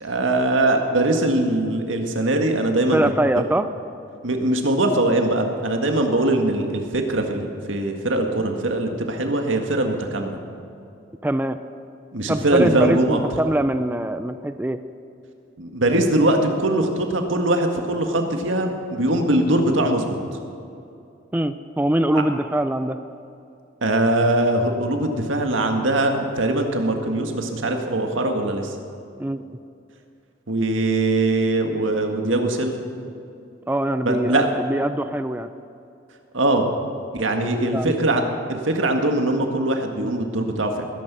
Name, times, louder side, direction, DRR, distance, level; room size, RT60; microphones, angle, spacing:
voice 1, 0.0-3.1 4.2-10.4 12.1-13.2 15.6-20.2 22.1-22.2 23.8-28.8 30.5-32.7 34.0-34.6 36.3-36.7 37.1-38.2 38.5-40.8, right 1 dB, 90° right, 4 dB, 1.8 m, -21 dB
voice 2, 2.9-3.7 11.2-11.6 12.3-14.8 21.3-23.0 29.2-29.4 33.7-35.5 37.4-37.9, right 1 dB, 10° right, 10 dB, 0.4 m, -23 dB
20.0 x 11.0 x 6.2 m, 2.6 s
head